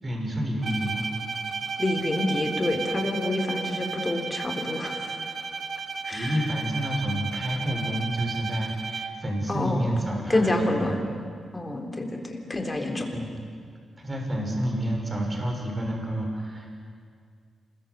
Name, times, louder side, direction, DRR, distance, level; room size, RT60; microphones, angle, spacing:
voice 1, 0.0-1.1 6.1-11.0 13.1-13.3 14.0-16.7, right 1 dB, 25° right, 0 dB, 6.2 m, -29 dB
Bowed string instrument, 0.6-9.4, right 4 dB, 45° right, 1.5 m, -33 dB
voice 2, 1.8-5.2 6.0-6.4 9.5-9.9 10.3-11.0 11.5-13.1, left 2 dB, 20° left, 3 dB, 3.9 m, -27 dB
27.0 x 21.5 x 8.4 m, 2.1 s
cardioid pair, 95°, 0 cm